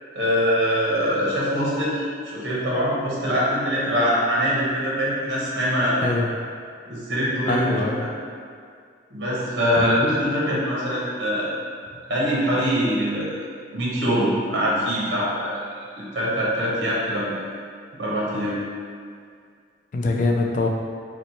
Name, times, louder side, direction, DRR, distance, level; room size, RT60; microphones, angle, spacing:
voice 1, 0.1-6.0 6.9-8.1 9.1-11.5 12.0-13.4 13.7-15.6 16.0-17.3 18.0-18.6, equal, 70° right, -6 dB, 0.8 m, -23 dB
voice 2, 7.5-8.1 9.8-9.9 19.9-20.7, left 3 dB, 45° left, 1 dB, 0.3 m, -23 dB
3.0 x 2.1 x 4.0 m, 2.2 s
head